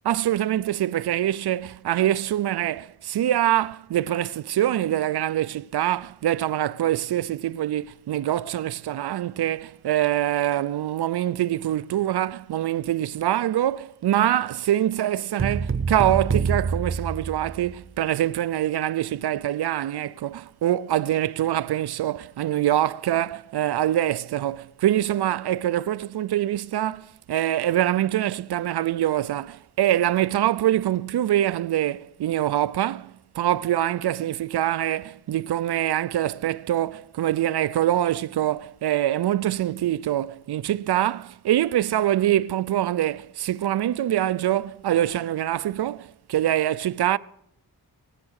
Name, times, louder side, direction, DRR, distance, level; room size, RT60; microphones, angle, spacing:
voice 1, 0.1-47.2, right 12 dB, 85° right, 0.5 m, -24 dB
sound 1, 15.4-17.9, right 5 dB, 35° right, 0.9 m, -26 dB
22.0 x 9.7 x 6.4 m
wide cardioid pair, 130°, 38 cm